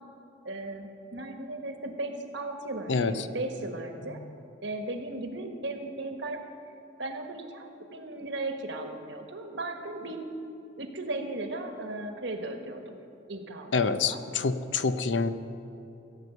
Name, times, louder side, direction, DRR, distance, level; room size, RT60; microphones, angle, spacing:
voice 1, 0.4-4.2 4.6-6.4 7.0-10.3 10.8-13.0 13.3-14.2, right 2 dB, 70° right, 5 dB, 1.5 m, -36 dB
voice 2, 13.7-15.3, left 4 dB, 70° left, 12 dB, 0.6 m, -26 dB
16.0 x 8.2 x 8.1 m, 2.8 s
head